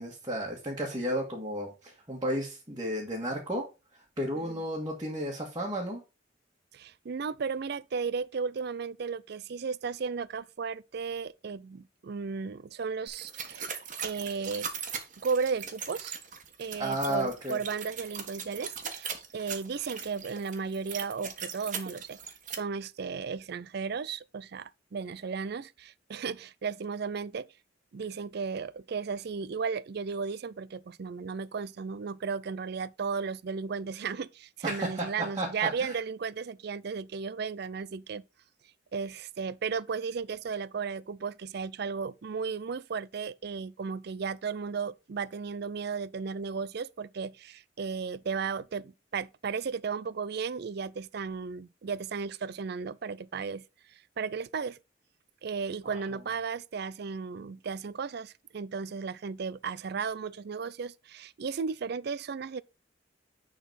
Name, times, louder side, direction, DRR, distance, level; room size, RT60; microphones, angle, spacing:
voice 1, 0.0-3.7 4.2-6.0 16.8-17.6 34.6-35.5 35.8-36.0 55.8-56.0, equal, 20° right, 1.8 m, -33 dB
voice 2, 6.7-13.7 14.0-14.7 15.2-16.2 16.6-22.2 22.5-27.5 27.9-38.2 38.9-53.6 54.2-54.8 55.4-62.6, right 5 dB, 60° right, 0.4 m, -35 dB
sound 1, 13.1-22.5, right 7 dB, 45° right, 1.5 m, -39 dB
10.0 x 4.0 x 4.2 m
head